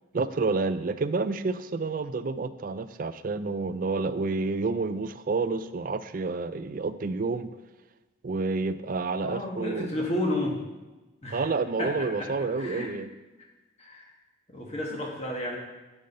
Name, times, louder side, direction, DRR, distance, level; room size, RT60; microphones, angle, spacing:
voice 1, 0.1-7.5 8.2-10.0 11.3-13.1, right 3 dB, 45° right, 12 dB, 0.4 m, -29 dB
voice 2, 9.2-10.6 11.2-11.5 11.8-12.9 13.8-14.1 14.5-15.6, left 1 dB, 35° left, -1 dB, 1.3 m, -32 dB
8.2 x 6.5 x 5.4 m, 1.1 s
head